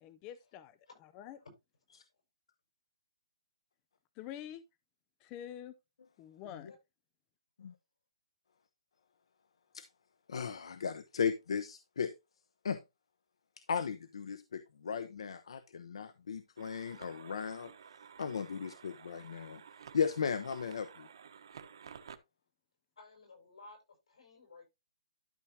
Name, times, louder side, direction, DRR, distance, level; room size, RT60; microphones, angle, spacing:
voice 1, 0.0-1.4 4.2-4.6 5.2-5.7 6.2-6.7, left 10 dB, 15° left, 0.3 m, -47 dB
voice 2, 10.3-12.1 12.6-12.8 13.7-17.7 18.2-19.6 19.9-21.1, left 6 dB, 60° left, 0.9 m, -36 dB
sound 1, 16.6-22.2, right 7 dB, 50° right, 1.1 m, -53 dB
voice 3, 23.0-23.8 24.1-24.7, left 3 dB, 80° left, 6.1 m, -55 dB
12.0 x 6.1 x 2.8 m
hypercardioid pair, 175°, 3 cm